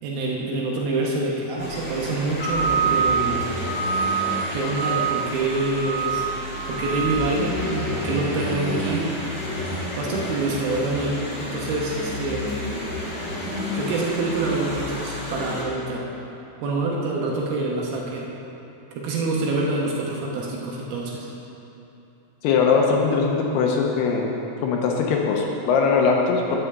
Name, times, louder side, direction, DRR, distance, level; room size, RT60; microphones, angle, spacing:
voice 1, 0.0-3.4 4.5-6.2 6.7-9.1 10.0-12.6 13.7-16.0 16.6-18.3 19.0-21.3, right 2 dB, 70° right, -3 dB, 2.6 m, -26 dB
sound 1, 1.6-15.6, right 2 dB, 25° left, 1.6 m, -28 dB
voice 2, 22.4-24.3 24.6-26.6, left 5 dB, 80° left, 0 dB, 2.8 m, -21 dB
9.6 x 5.6 x 7.9 m, 3.0 s
omnidirectional pair, 5.0 m